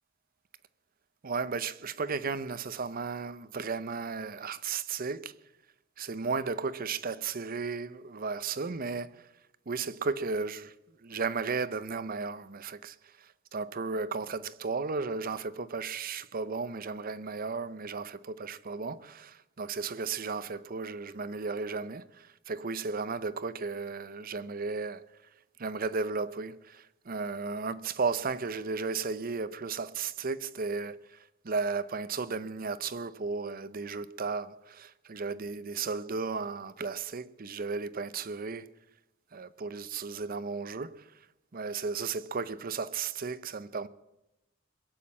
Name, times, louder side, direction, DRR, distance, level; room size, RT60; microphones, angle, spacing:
voice 1, 1.2-5.3 6.0-9.3 9.7-10.7 11.0-25.1 25.6-38.7 39.3-41.1 41.5-43.9, right 4 dB, 45° right, 0.6 m, -34 dB
21.5 x 7.4 x 8.5 m
head